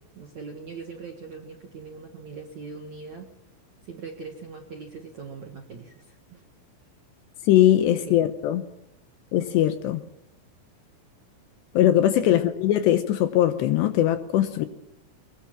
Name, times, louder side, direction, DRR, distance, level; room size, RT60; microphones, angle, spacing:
voice 1, 0.1-3.3 3.8-6.4 7.7-7.8 8.1-8.2 12.0-12.4, right 5 dB, 60° right, 4 dB, 1.9 m, -41 dB
voice 2, 7.5-8.6 9.3-10.0 11.7-14.7, left 12 dB, 75° left, 10 dB, 2.7 m, -21 dB
23.0 x 21.0 x 7.4 m, 0.86 s
omnidirectional pair, 5.7 m